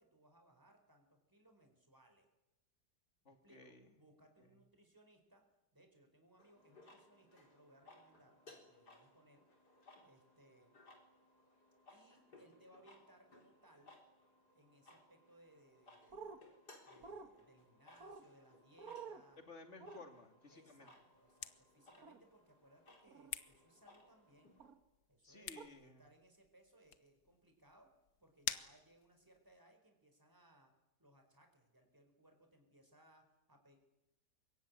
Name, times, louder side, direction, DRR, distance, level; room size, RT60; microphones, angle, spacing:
voice 1, 0.0-2.3 3.4-5.4 5.7-9.5 10.0-10.7 11.9-14.0 14.5-16.4 16.8-19.4 20.5-24.6 25.1-27.9 28.2-30.7 31.0-33.8, right 1 dB, 10° right, 4 dB, 4.5 m, -67 dB
voice 2, 3.2-3.9 19.5-20.9 25.2-26.0, left 3 dB, 45° left, 6 dB, 2.9 m, -57 dB
sound 1, 6.4-24.7, left 2 dB, 90° left, 4.7 m, -64 dB
sound 2, 16.1-16.4 17.0-17.3 18.0-18.2 18.8-19.2 19.8-20.0 22.0-22.2 23.1-23.3 24.6-24.8 25.6-25.7, right 5 dB, 65° right, 2.2 m, -50 dB
sound 3, 21.0-29.6, left 8 dB, 65° left, 1.6 m, -51 dB
25.0 x 22.0 x 9.7 m, 0.99 s
omnidirectional pair, 1.7 m